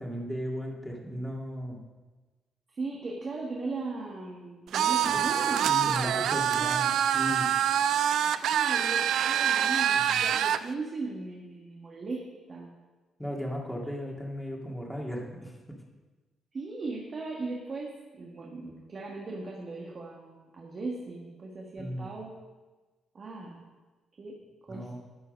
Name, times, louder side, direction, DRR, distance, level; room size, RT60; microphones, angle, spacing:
voice 1, 0.0-1.8 5.7-7.5 10.0-10.2 13.2-15.8 21.8-22.1 24.7-24.9, equal, 5° left, -1 dB, 2.2 m, -36 dB
voice 2, 2.7-6.8 8.4-12.7 16.5-22.3 23.1-23.6 24.2-24.4 24.7-24.9, right 3 dB, 40° right, -2 dB, 1.6 m, -38 dB
sound 1, 4.7-10.6, right 9 dB, 75° right, 0.4 m, -25 dB
13.5 x 5.6 x 5.3 m, 1.3 s
cardioid pair, 90°, 0 cm